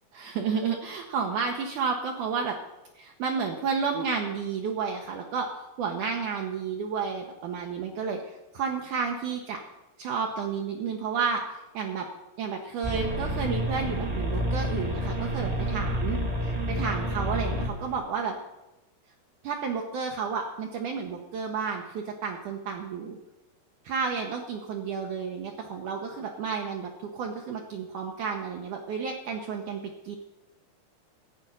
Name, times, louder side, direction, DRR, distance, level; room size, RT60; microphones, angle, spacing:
voice 1, 0.1-2.6 3.0-9.6 10.0-12.1 12.4-16.2 16.7-18.4 19.4-23.2 23.8-30.2, right 5 dB, 70° right, 2 dB, 2.1 m, -31 dB
sound 1, 12.8-18.0, equal, 90° right, 0.3 m, -29 dB
15.5 x 5.2 x 9.3 m, 0.96 s
omnidirectional pair, 4.6 m